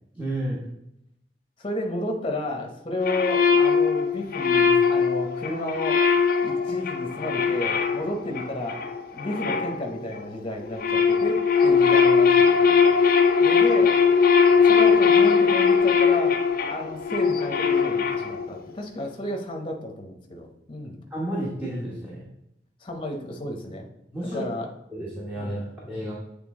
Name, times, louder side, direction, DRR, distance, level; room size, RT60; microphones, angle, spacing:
voice 1, 0.1-0.6 21.1-22.2 24.1-24.4 24.9-26.1, right 1 dB, 10° right, -6 dB, 1.1 m, -31 dB
voice 2, 1.6-6.0 6.4-8.8 9.1-13.0 13.4-14.0 14.6-16.4 16.7-21.0 22.8-23.9 24.2-24.7 25.4-25.6, left 1 dB, 30° left, 2 dB, 0.9 m, -32 dB
sound 1, 3.0-10.3 10.6-18.6, left 6 dB, 50° left, 0.5 m, -20 dB
8.1 x 3.3 x 3.7 m, 0.81 s
head